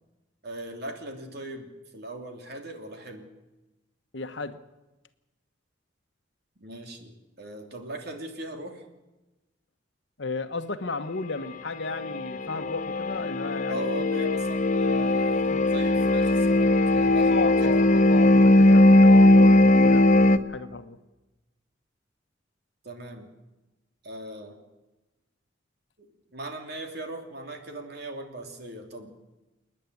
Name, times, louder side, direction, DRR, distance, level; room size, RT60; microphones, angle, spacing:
voice 1, 0.4-3.3 6.6-8.8 13.7-17.8 22.8-23.3 24.0-24.6 26.0-29.1, right 1 dB, 60° right, 3.1 m, -39 dB
voice 2, 4.1-4.6 10.2-14.0 15.5-15.6 17.3-21.0, left 3 dB, 70° left, 1.2 m, -34 dB
sound 1, 11.8-20.4, left 1 dB, 40° left, 0.8 m, -19 dB
28.0 x 10.0 x 9.4 m
head